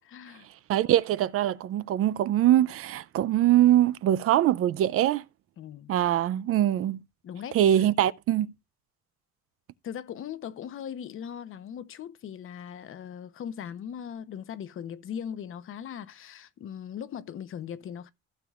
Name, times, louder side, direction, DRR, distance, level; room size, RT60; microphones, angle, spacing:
voice 1, 0.1-0.5 5.6-5.9 7.2-7.9 9.8-18.1, left 8 dB, 45° left, 0.9 m, -39 dB
voice 2, 0.7-5.2 5.9-7.0 7.5-8.5, right 12 dB, 50° right, 0.5 m, -23 dB
15.0 x 6.9 x 2.4 m
cardioid pair, 145°, 29 cm